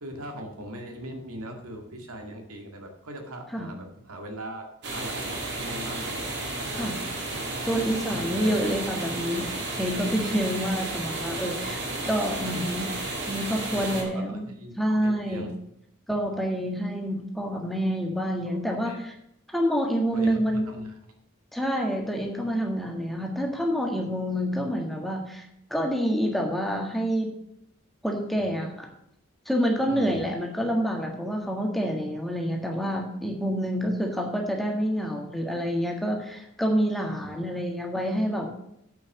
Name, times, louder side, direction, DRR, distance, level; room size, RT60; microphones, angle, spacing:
voice 1, 0.0-4.6 4.9-6.4 6.7-6.9 8.1-8.5 12.4-12.5 13.7-15.5 18.5-19.0 20.1-21.0 28.4-28.5 29.9-30.2 37.2-37.4, right 1 dB, 90° right, 3 dB, 2.1 m, -40 dB
sound 1, 4.8-14.0, right 2 dB, 55° right, 2.7 m, -32 dB
voice 2, 7.6-12.9 13.3-14.4 14.8-15.5 16.1-19.1 19.5-20.7 21.5-27.3 28.0-28.9 29.5-38.5, equal, ahead, 1 dB, 1.6 m, -27 dB
8.6 x 6.1 x 7.2 m, 0.75 s
head